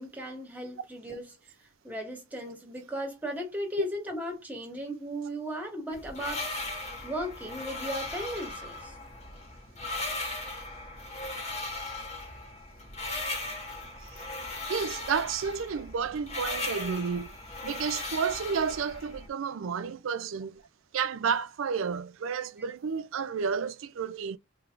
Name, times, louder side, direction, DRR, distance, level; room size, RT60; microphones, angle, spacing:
voice 1, 0.0-6.5 7.0-9.0, equal, 10° right, 1.8 m, -36 dB
sound 1, 5.9-19.3, left 2 dB, 35° left, 1.5 m, -38 dB
voice 2, 14.7-17.3 17.6-20.6 20.9-24.4, right 6 dB, 90° right, 0.4 m, -31 dB
4.5 x 3.3 x 2.5 m
head